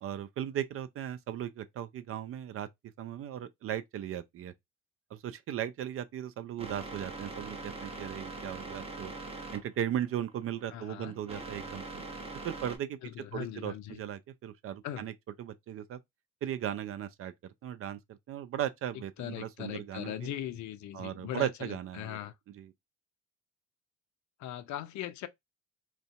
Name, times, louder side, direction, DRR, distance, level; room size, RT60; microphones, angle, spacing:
voice 1, 0.0-2.7 3.0-4.5 5.1-9.1 9.5-12.0 12.4-13.0 13.3-15.1 15.4-16.0 16.4-20.3 20.9-22.2 22.5-22.7, right 10 dB, 35° right, 0.4 m, -37 dB
sound 1, 6.6-12.8, right 3 dB, 15° right, 0.8 m, -43 dB
voice 2, 10.7-11.1 13.0-14.0 14.8-15.0 19.2-22.3 24.4-25.3, left 11 dB, 50° left, 0.5 m, -39 dB
2.4 x 2.2 x 2.3 m
hypercardioid pair, 60°, 39 cm